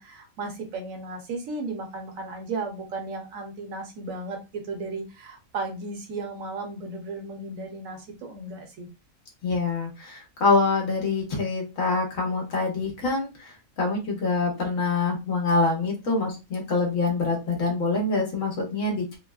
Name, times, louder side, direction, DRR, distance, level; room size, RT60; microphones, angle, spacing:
voice 1, 0.0-8.9, right 3 dB, 80° right, 3 dB, 1.2 m, -35 dB
voice 2, 9.4-19.2, left 3 dB, 75° left, 0 dB, 1.5 m, -25 dB
3.3 x 2.0 x 2.3 m, 0.26 s
omnidirectional pair, 1.4 m